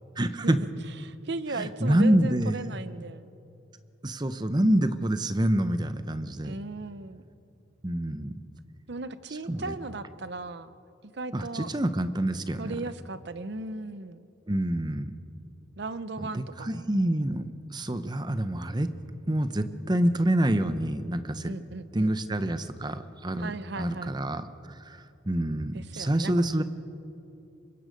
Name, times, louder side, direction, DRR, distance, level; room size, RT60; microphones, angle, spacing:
voice 1, 0.2-0.6 1.5-2.6 4.0-6.5 7.8-8.3 9.5-9.6 11.3-12.7 14.5-15.1 16.2-18.9 19.3-21.5 21.9-23.5 23.8-25.0 25.3-26.6, right 1 dB, 20° right, 11 dB, 0.8 m, -27 dB
voice 2, 1.0-3.3 6.4-7.2 8.9-10.7 11.0-11.7 12.6-14.3 15.8-16.9 21.4-22.1 23.4-24.1 25.7-26.3, right 3 dB, 60° right, 13 dB, 0.7 m, -37 dB
25.5 x 22.5 x 5.2 m, 2.8 s
head